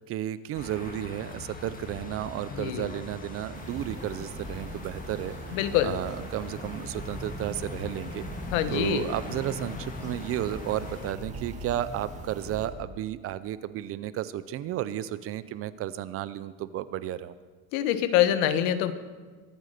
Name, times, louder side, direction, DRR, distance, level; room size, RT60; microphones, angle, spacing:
voice 1, 0.0-5.3 5.8-8.2 8.7-17.4, right 12 dB, 35° right, 15 dB, 0.5 m, -33 dB
sound 1, 0.5-11.1, left 3 dB, 20° left, 1.7 m, -41 dB
voice 2, 2.5-2.9 5.5-5.9 8.5-9.0 17.7-18.9, left 11 dB, 75° left, 12 dB, 1.4 m, -25 dB
sound 2, 3.5-12.7, right 1 dB, 15° right, 2.2 m, -42 dB
23.5 x 9.0 x 6.6 m, 1.4 s
cardioid pair, 160°, 42 cm